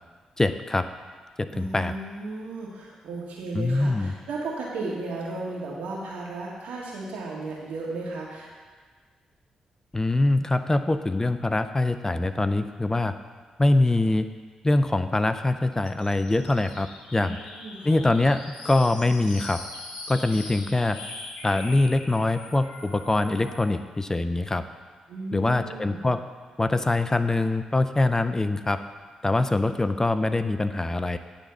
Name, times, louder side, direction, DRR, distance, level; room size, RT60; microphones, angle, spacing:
voice 1, 0.4-0.9 1.4-1.9 3.5-4.1 9.9-13.1 13.6-14.3 14.6-17.4 17.8-19.6 20.1-21.0 21.4-24.6 25.3-26.2 26.6-28.8 29.2-31.2, left 2 dB, 20° left, 10 dB, 0.5 m, -23 dB
voice 2, 1.5-8.5 17.1-18.1 25.1-26.1, right 2 dB, 80° right, -3 dB, 1.9 m, -35 dB
sound 1, 15.8-23.8, left 2 dB, 85° left, 1.2 m, -42 dB
10.0 x 4.0 x 7.0 m, 1.5 s
hypercardioid pair, 45°, 2 cm